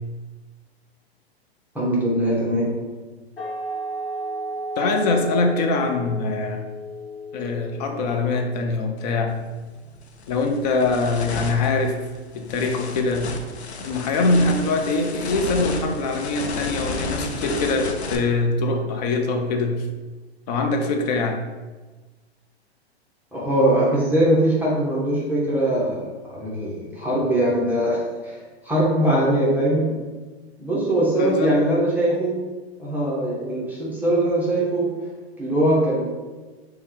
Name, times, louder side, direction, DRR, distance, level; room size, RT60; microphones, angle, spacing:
voice 1, 1.7-2.8 23.3-30.0 30.6-32.4 32.8-34.9 35.4-36.0, right 1 dB, 5° right, -7 dB, 0.7 m, -21 dB
sound 1, 3.4-8.8, right 1 dB, 60° left, 1.1 m, -33 dB
voice 2, 4.8-6.7 7.3-9.3 10.3-12.0 12.3-13.3 13.8-19.8 20.5-21.4 31.2-31.5, left 3 dB, 40° left, 3 dB, 0.6 m, -23 dB
sound 2, 9.3-9.5 9.9-18.2, left 3 dB, 80° left, 0.6 m, -32 dB
3.4 x 2.3 x 4.3 m, 1.3 s
figure-of-eight pair, 110°, 32 cm